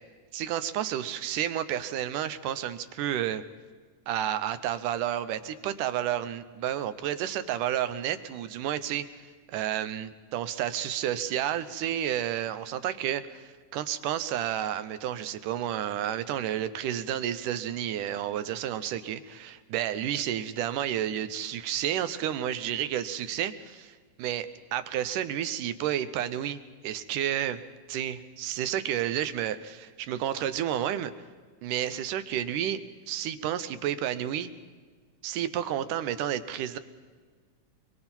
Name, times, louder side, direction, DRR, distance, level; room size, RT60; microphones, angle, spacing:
voice 1, 0.3-3.4 4.1-9.1 9.5-27.6 27.9-31.1 31.6-32.8 33.1-34.5 35.2-36.8, right 11 dB, 80° right, 12 dB, 2.4 m, -31 dB
24.5 x 24.0 x 4.5 m, 1.5 s
omnidirectional pair, 3.7 m